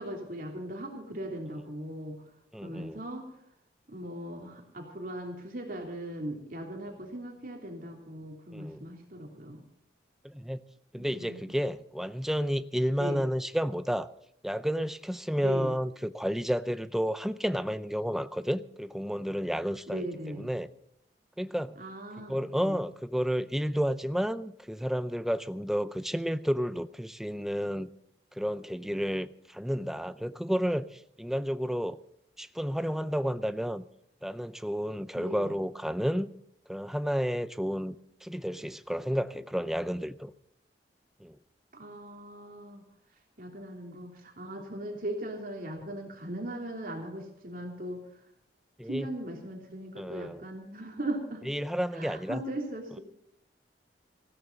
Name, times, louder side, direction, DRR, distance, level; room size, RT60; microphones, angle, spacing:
voice 1, 0.0-2.2 2.6-3.3 3.9-9.6 11.0-11.6 13.0-13.2 15.4-15.7 19.9-20.5 21.8-22.8 35.1-35.6 41.7-42.8 43.4-48.0 48.8-51.4 51.9-53.0, right 1 dB, 50° right, 3.2 m, -39 dB
voice 2, 2.5-3.0 8.5-8.9 10.2-10.6 10.9-14.1 14.4-20.1 20.4-20.7 21.4-21.8 22.3-27.9 28.4-32.0 32.4-33.9 34.2-36.3 36.7-40.3 41.2-41.4 48.8-49.1 50.0-50.4 51.5-52.4, equal, ahead, 0.5 m, -31 dB
19.0 x 16.0 x 4.0 m
head